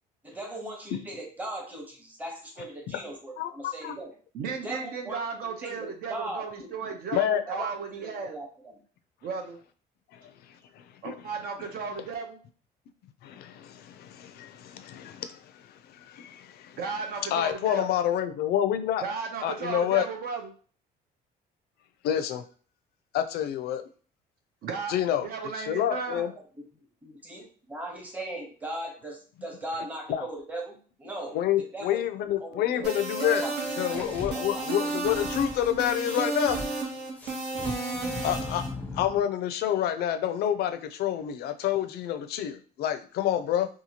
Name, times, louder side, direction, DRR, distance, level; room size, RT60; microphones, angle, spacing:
voice 1, 0.2-4.1 4.5-6.9 7.5-8.8 26.1-26.3 26.6-26.7 27.0-32.9 33.4-33.5 33.9-34.7, right 1 dB, 10° right, -1 dB, 0.8 m, -39 dB
voice 2, 3.4-3.9 7.1-7.4 10.1-10.2 10.8-11.1 13.2-16.8 17.3-19.0 19.4-20.1 22.0-22.4 23.1-23.8 24.9-25.3 25.6-26.3 30.1-30.3 31.3-33.5 33.8-36.6 38.2-38.6 38.9-43.7, left 11 dB, 70° left, 9 dB, 0.4 m, -28 dB
voice 3, 4.3-8.4 9.2-9.6 11.0-12.4 16.8-17.9 19.0-20.5 24.6-24.9 25.2-26.3, right 5 dB, 60° right, 4 dB, 0.5 m, -35 dB
sound 1, 32.8-38.7, right 3 dB, 85° right, 0.9 m, -32 dB
sound 2, 33.8-36.7 37.2-39.2, left 3 dB, 10° left, 0.5 m, -39 dB
2.8 x 2.3 x 2.8 m, 0.41 s
cardioid pair, 110°, 17 cm